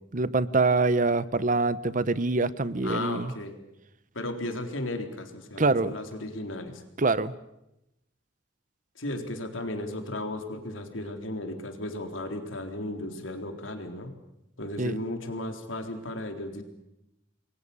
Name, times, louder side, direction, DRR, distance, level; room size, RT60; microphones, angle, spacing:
voice 1, 0.1-3.3 5.6-6.0 7.0-7.3 14.8-15.0, right 3 dB, 40° right, 16 dB, 0.9 m, -25 dB
voice 2, 2.8-3.5 4.1-6.8 9.0-14.1 14.6-16.6, left 1 dB, 85° left, 5 dB, 3.9 m, -35 dB
28.5 x 22.0 x 7.0 m, 0.87 s
head